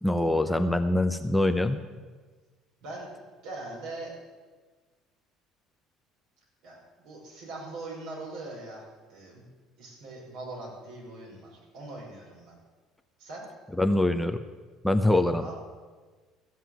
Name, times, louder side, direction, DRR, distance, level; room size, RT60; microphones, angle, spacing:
voice 1, 0.0-1.8 13.8-14.4 14.8-15.5, left 1 dB, 5° left, 8 dB, 0.9 m, -24 dB
voice 2, 3.4-4.1 6.6-9.5 9.8-12.6 13.2-13.5 15.4-15.5, right 2 dB, 70° right, -3 dB, 5.8 m, -41 dB
15.5 x 7.5 x 8.1 m, 1.4 s
hypercardioid pair, 65°, 0 cm